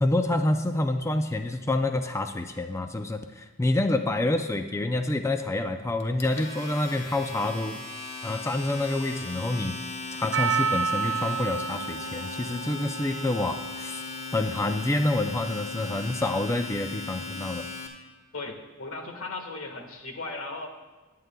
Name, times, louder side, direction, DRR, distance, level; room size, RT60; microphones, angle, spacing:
voice 1, 0.0-7.8 8.2-9.8 10.1-14.0 14.3-17.7, left 2 dB, 15° left, 7 dB, 0.4 m, -27 dB
Domestic sounds home sounds, 6.0-17.9, left 3 dB, 35° left, 1.2 m, -38 dB
Percussion, 10.3-14.7 14.9-15.0, right 6 dB, 65° right, 0.6 m, -31 dB
voice 2, 18.3-20.7, left 3 dB, 85° left, 4 dB, 1.5 m, -37 dB
20.0 x 9.3 x 2.3 m, 1.3 s
head